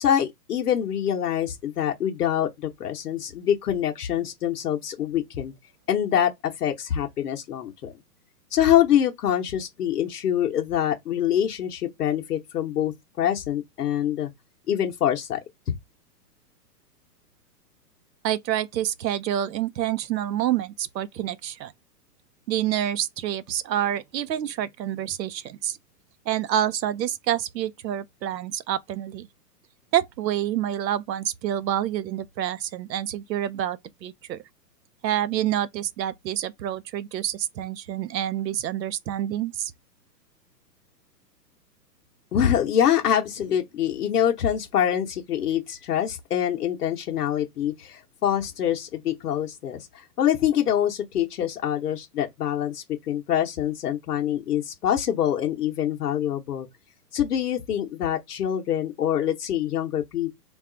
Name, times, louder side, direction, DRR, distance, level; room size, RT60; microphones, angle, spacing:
voice 1, 0.0-5.5 5.9-7.9 8.5-14.3 14.7-15.4 42.3-56.7 57.1-60.3, left 10 dB, 65° left, 0.8 m, -25 dB
voice 2, 18.2-21.7 22.5-25.8 26.3-29.3 29.9-34.4 35.0-39.7, right 11 dB, 90° right, 0.7 m, -27 dB
3.5 x 2.3 x 3.7 m
hypercardioid pair, 180°, 49 cm